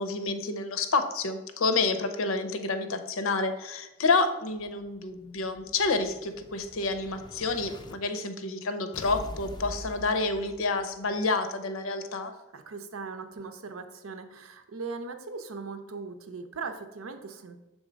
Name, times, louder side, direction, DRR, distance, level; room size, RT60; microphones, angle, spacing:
voice 1, 0.0-12.3, left 3 dB, 85° left, 9 dB, 0.7 m, -29 dB
Explosion, 4.6-7.9 8.9-11.0, left 1 dB, 20° left, 0.3 m, -44 dB
voice 2, 12.5-17.6, right 4 dB, 85° right, 7 dB, 0.7 m, -39 dB
6.3 x 3.6 x 5.1 m, 0.97 s
head